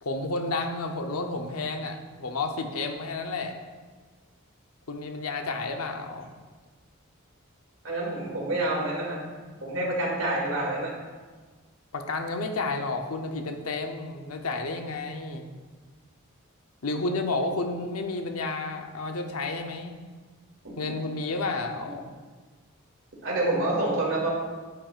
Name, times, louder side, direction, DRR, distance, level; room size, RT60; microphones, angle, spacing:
voice 1, 0.0-3.5 4.9-6.3 11.9-15.4 16.8-20.0 20.8-22.1, left 3 dB, 85° left, 4 dB, 0.8 m, -31 dB
voice 2, 7.8-9.2 9.6-10.9 20.6-20.9 23.2-24.3, right 2 dB, 65° right, -3 dB, 2.4 m, -28 dB
9.5 x 9.0 x 2.5 m, 1.4 s
head